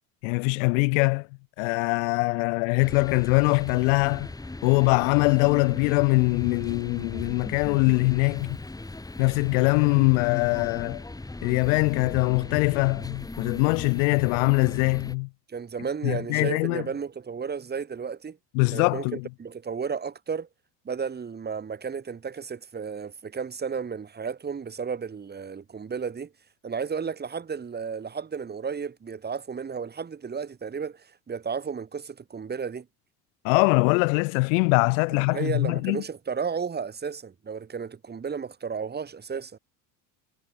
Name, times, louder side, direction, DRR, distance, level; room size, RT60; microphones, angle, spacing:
voice 1, 0.2-1.3 1.6-4.3 4.6-8.6 9.2-11.0 11.4-15.3 16.0-16.8 18.5-19.2 33.4-36.0, left 32 dB, 85° left, 0.7 m, -22 dB
sound 1, 2.8-15.2, left 2 dB, 10° left, 4.2 m, -38 dB
voice 2, 15.5-18.4 18.7-20.5 20.8-26.3 26.6-32.9 35.3-39.6, right 6 dB, 25° right, 4.4 m, -33 dB
supercardioid pair, 115°, 39 cm